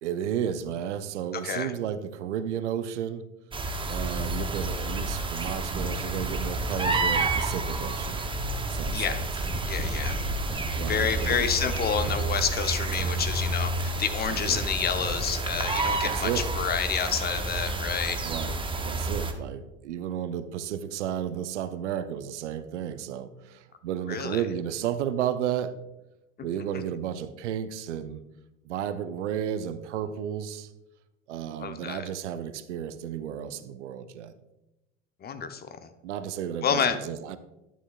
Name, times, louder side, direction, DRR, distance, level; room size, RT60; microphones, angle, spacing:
voice 1, 0.0-3.2 3.9-8.2 8.7-9.2 10.8-11.5 14.3-14.6 16.0-16.5 18.2-25.7 26.4-28.2 28.6-30.7 31.3-34.3 36.0-37.4, right 9 dB, 70° right, 13 dB, 0.6 m, -33 dB
sound 1, 3.5-19.3, right 2 dB, 15° right, 0.8 m, -29 dB
voice 2, 9.7-10.2 10.9-18.2 24.1-24.4 31.6-32.0 35.2-35.7 36.6-37.0, left 7 dB, 25° left, 9 dB, 0.8 m, -29 dB
11.0 x 7.0 x 2.4 m, 0.96 s
figure-of-eight pair, 75°, 36 cm